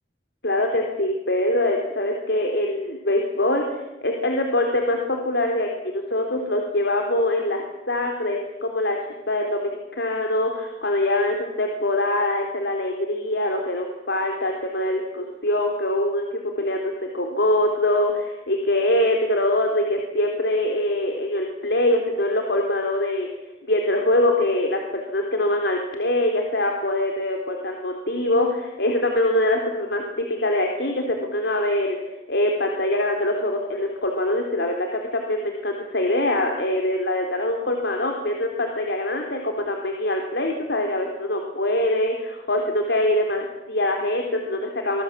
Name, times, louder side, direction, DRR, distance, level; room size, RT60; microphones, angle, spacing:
voice 1, 0.4-9.0 9.3-16.2 16.6-23.3 23.7-45.0, left 1 dB, 85° left, 2 dB, 3.8 m, -23 dB
27.0 x 20.5 x 8.7 m, 0.94 s
head